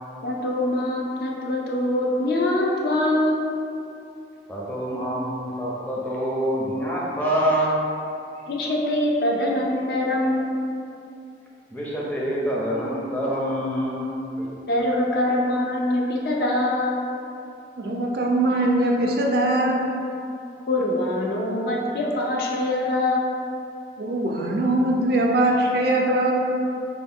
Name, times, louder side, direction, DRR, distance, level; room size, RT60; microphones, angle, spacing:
voice 1, 0.2-3.5 8.5-10.6 14.7-17.0 20.7-23.3, left 1 dB, 55° left, -2 dB, 0.5 m, -23 dB
voice 2, 4.5-7.8 11.7-14.2, equal, 10° left, -6 dB, 0.5 m, -26 dB
voice 3, 17.8-19.8 24.0-26.3, right 1 dB, 60° right, 0 dB, 0.4 m, -21 dB
4.3 x 2.2 x 3.6 m, 2.6 s
head